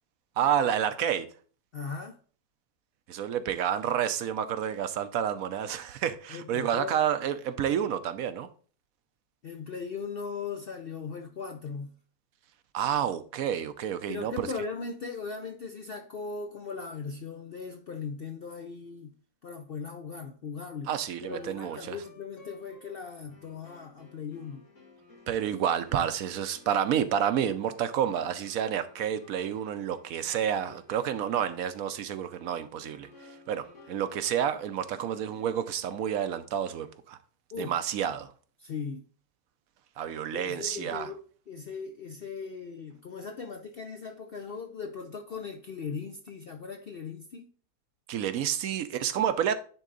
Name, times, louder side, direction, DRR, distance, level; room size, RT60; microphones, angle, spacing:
voice 1, 0.4-1.3 3.1-8.5 12.7-14.5 20.9-22.0 25.3-33.1 33.5-37.2 37.6-38.3 40.0-41.1 48.1-49.5, right 9 dB, 70° right, 1.0 m, -29 dB
voice 2, 1.7-2.2 6.3-7.0 9.4-11.9 14.1-19.1 19.4-20.9 21.2-24.6 37.5-37.7 38.6-39.0 40.3-47.5, left 5 dB, 60° left, 0.6 m, -38 dB
sound 1, 21.2-36.6, left 3 dB, 80° left, 3.1 m, -56 dB
10.0 x 3.9 x 3.9 m
omnidirectional pair, 1.6 m